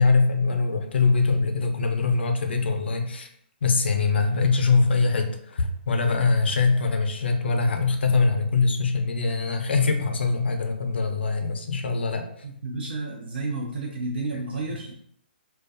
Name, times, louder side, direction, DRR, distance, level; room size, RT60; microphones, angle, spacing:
voice 1, 0.0-3.3 3.6-12.2, left 4 dB, 80° left, 5 dB, 0.5 m, -23 dB
voice 2, 12.4-14.9, right 3 dB, 65° right, -1 dB, 0.5 m, -31 dB
2.3 x 2.2 x 2.6 m, 0.68 s
hypercardioid pair, 165°, 6 cm